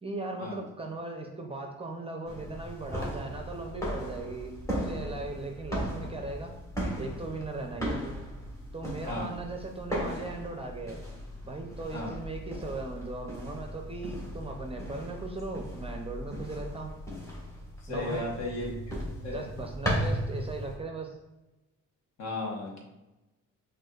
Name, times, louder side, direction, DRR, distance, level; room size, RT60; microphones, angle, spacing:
voice 1, 0.0-6.5 7.0-8.0 8.7-11.0 11.4-16.9 17.9-18.3 19.3-21.2, right 3 dB, 20° right, 3 dB, 0.6 m, -38 dB
sound 1, 2.3-20.8, equal, 10° left, 1.5 m, -37 dB
voice 2, 17.9-18.7 19.2-19.4 22.2-22.8, left 2 dB, 60° left, 0 dB, 1.2 m, -34 dB
6.0 x 2.6 x 2.4 m, 1.0 s
cardioid pair, 90°, 30 cm